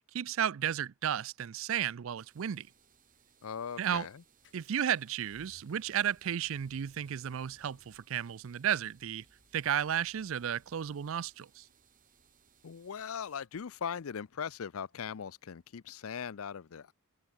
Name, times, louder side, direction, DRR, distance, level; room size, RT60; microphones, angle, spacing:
voice 1, 0.1-2.7 3.8-4.1 4.5-9.2 9.5-11.6, right 9 dB, 65° right, 0.4 m, -33 dB
sound 1, 2.2-13.5, right 7 dB, 35° right, 4.0 m, -67 dB
sound 2, 2.3-16.0, left 2 dB, 55° left, 1.8 m, -69 dB
voice 2, 3.4-4.2 12.6-16.9, left 7 dB, 75° left, 0.5 m, -40 dB
head